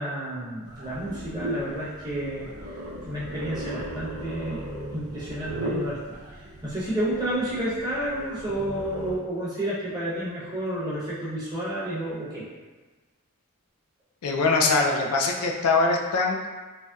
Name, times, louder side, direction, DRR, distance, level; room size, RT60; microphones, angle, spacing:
voice 1, 0.0-2.5 3.1-4.6 4.9-6.0 6.3-12.4, right 1 dB, 20° right, -9 dB, 0.8 m, -30 dB
sound 1, 0.6-9.2, right 1 dB, 90° right, 0.5 m, -36 dB
voice 2, 14.2-16.5, left 3 dB, 90° left, 1 dB, 0.4 m, -22 dB
3.1 x 2.7 x 2.3 m, 1.3 s
head